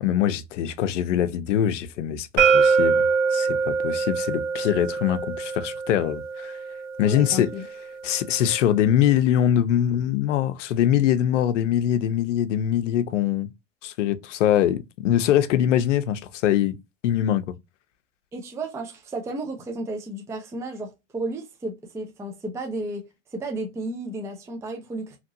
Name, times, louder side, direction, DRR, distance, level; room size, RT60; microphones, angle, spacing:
voice 1, 0.0-3.0 3.3-6.5 7.0-7.5 8.0-13.5 13.8-16.8 17.0-17.4, left 10 dB, 85° left, 0.6 m, -23 dB
sound 1, 2.4-8.2, right 5 dB, 65° right, 1.6 m, -24 dB
voice 2, 7.0-7.6 18.3-23.0 23.3-25.2, right 2 dB, 10° right, 0.4 m, -33 dB
2.9 x 2.5 x 2.6 m
supercardioid pair, 125°, 36 cm